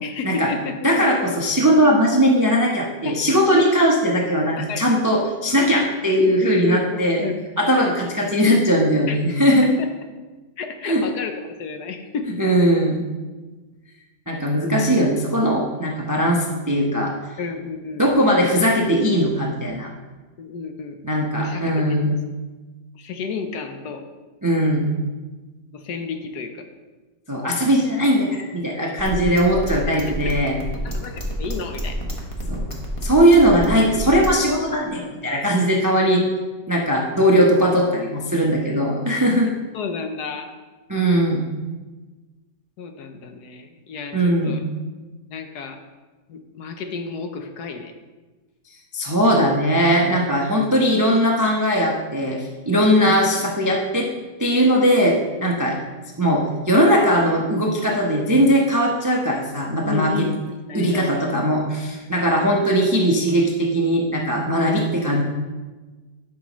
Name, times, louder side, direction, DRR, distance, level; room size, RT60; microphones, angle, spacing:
voice 1, 0.0-1.1 3.0-3.2 4.6-4.9 6.2-7.3 9.1-9.2 9.6-9.9 10.6-12.4 14.3-14.6 17.4-18.1 20.4-21.0 21.4-22.2 22.9-24.1 25.7-26.6 29.9-30.0 30.8-32.0 39.7-40.5 42.8-44.6 45.3-45.8 46.3-47.9 53.0-53.2 59.8-61.2, left 5 dB, 65° left, 6 dB, 1.1 m, -32 dB
voice 2, 0.8-7.2 7.6-9.7 10.8-11.0 12.4-13.0 14.3-17.1 18.0-19.9 21.0-22.1 24.4-24.9 27.3-30.6 32.5-32.6 33.0-36.2 36.7-39.5 40.9-41.4 44.1-44.6 48.9-54.1 54.4-55.8 56.2-60.3 60.7-65.2, equal, 30° right, -1 dB, 0.3 m, -19 dB
sound 1, 29.0-34.4, right 1 dB, 20° left, 1.1 m, -30 dB
12.0 x 6.0 x 3.0 m, 1.3 s
omnidirectional pair, 2.0 m